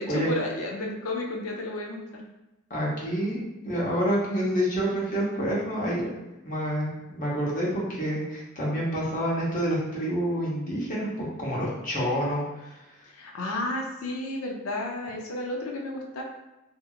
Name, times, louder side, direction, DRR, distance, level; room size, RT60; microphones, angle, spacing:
voice 1, 0.0-2.0 13.1-16.2, left 2 dB, 85° left, 0 dB, 0.5 m, -32 dB
voice 2, 2.7-6.1 6.4-6.9 7.1-11.1 11.4-12.8, equal, 40° left, -6 dB, 0.9 m, -28 dB
2.8 x 2.6 x 2.4 m, 0.99 s
head